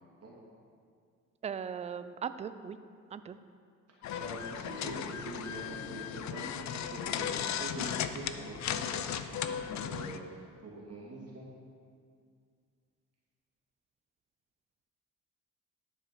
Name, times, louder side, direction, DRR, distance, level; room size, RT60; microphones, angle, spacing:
voice 1, 1.4-2.8 3.1-3.4, right 7 dB, 20° right, 12 dB, 0.3 m, -38 dB
sound 1, 4.0-10.2, left 9 dB, 40° left, 0.5 m, -36 dB
voice 2, 4.2-11.5, right 1 dB, 35° right, -5 dB, 2.4 m, -44 dB
10.5 x 4.9 x 5.8 m, 2.2 s
figure-of-eight pair, 45°, 42 cm